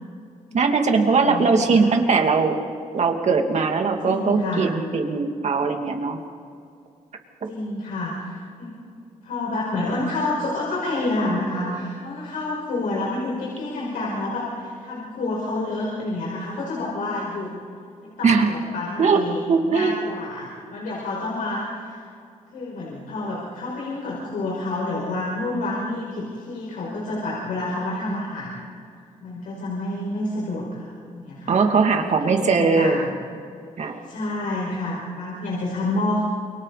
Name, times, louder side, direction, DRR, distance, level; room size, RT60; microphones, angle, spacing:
voice 1, 0.5-2.6 2.9-6.2 7.4-7.5 18.2-18.5 19.0-19.2 19.5-20.0 31.5-33.0 33.8-34.0, right 4 dB, 55° right, 3 dB, 2.7 m, -20 dB
voice 2, 1.1-1.8 4.0-4.7 7.5-8.7 9.2-17.5 18.0-19.4 19.7-21.9 22.5-28.6 29.2-33.1 33.8-36.2, left 2 dB, 85° left, -4 dB, 5.4 m, -29 dB
28.5 x 23.5 x 4.2 m, 2.4 s
cardioid pair, 75°, 14 cm